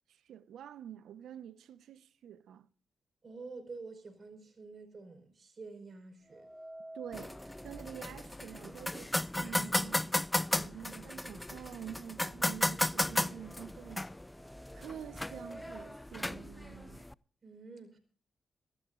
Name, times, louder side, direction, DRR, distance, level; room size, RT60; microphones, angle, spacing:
voice 1, 0.1-2.7 6.9-10.2 10.5-14.1 14.7-17.1, right 9 dB, 85° right, 1.0 m, -47 dB
voice 2, 3.2-6.5 17.4-18.0, right 4 dB, 50° right, 4.9 m, -48 dB
sound 1, 6.3-10.3 10.7-10.8 11.7-11.8 12.2-16.0, right 1 dB, 10° right, 1.1 m, -53 dB
sound 2, 7.1-17.1, left 1 dB, 15° left, 0.5 m, -35 dB
23.5 x 14.5 x 2.5 m
supercardioid pair, 55°, 0 cm